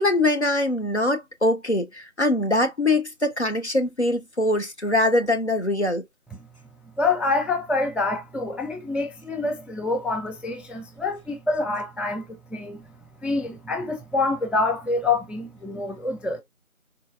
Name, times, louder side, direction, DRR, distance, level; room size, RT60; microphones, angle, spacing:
voice 1, 0.0-6.0, left 1 dB, 50° left, 0.5 m, -23 dB
voice 2, 7.0-12.8 13.2-16.4, left 3 dB, 5° right, 0.4 m, -26 dB
3.8 x 2.2 x 2.3 m
figure-of-eight pair, 175°, 42 cm